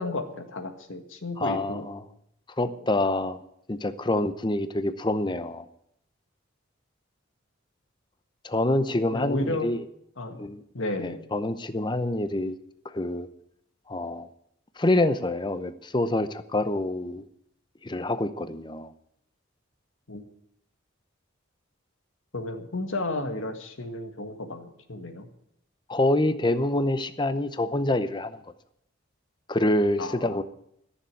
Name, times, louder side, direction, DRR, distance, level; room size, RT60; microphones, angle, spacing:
voice 1, 0.0-1.9 2.8-2.9 9.1-9.7 10.2-10.5 10.7-11.3 20.1-20.3 22.3-25.3 30.0-30.4, left 2 dB, 85° left, 6 dB, 1.8 m, -33 dB
voice 2, 1.4-2.0 2.6-3.4 3.7-5.7 8.4-9.8 10.4-10.6 11.0-12.6 12.8-13.3 13.9-14.3 14.8-17.2 17.8-18.9 25.9-28.4 29.5-30.4, left 1 dB, 25° left, 11 dB, 0.7 m, -26 dB
14.0 x 7.0 x 9.5 m, 0.74 s
head